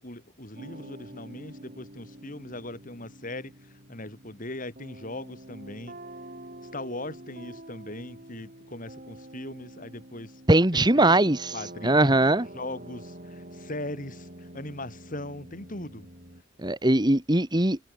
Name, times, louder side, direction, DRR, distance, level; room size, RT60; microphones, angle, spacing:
voice 1, 0.0-6.0 6.7-10.4 10.7-11.1 11.5-12.2 12.5-16.1, left 1 dB, 40° left, 6.5 m, -39 dB
sound 1, 0.6-16.4, right 1 dB, 40° right, 6.0 m, -46 dB
voice 2, 10.5-11.5 11.8-12.5 16.6-17.8, right 1 dB, 20° right, 1.7 m, -21 dB
head